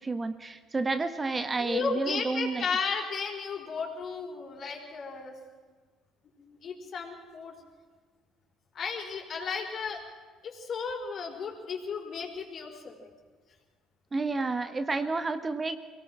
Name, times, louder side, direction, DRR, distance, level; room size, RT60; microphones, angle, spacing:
voice 1, 0.0-2.7 14.1-15.8, right 3 dB, 25° right, 10 dB, 1.3 m, -30 dB
voice 2, 1.6-5.4 6.4-7.6 8.7-10.0 10.4-13.1, left 5 dB, 50° left, 2 dB, 4.4 m, -34 dB
23.0 x 18.0 x 6.2 m, 1.5 s
hypercardioid pair, 60°, 0 cm